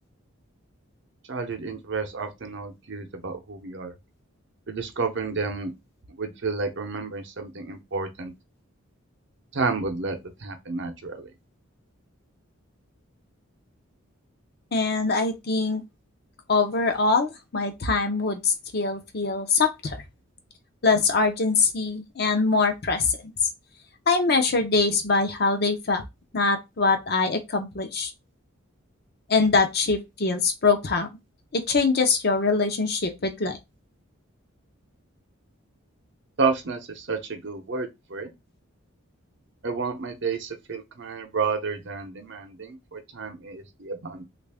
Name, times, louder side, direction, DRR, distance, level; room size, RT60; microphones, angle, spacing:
voice 1, 1.3-3.9 4.7-5.7 6.2-8.3 9.5-11.3 36.4-38.3 39.6-44.2, right 4 dB, 55° right, 0.7 m, -30 dB
voice 2, 14.7-15.8 16.5-20.0 20.8-23.2 24.1-26.0 26.3-28.1 29.3-31.1 31.5-33.6, left 4 dB, 50° left, 0.6 m, -23 dB
3.2 x 2.5 x 3.4 m
head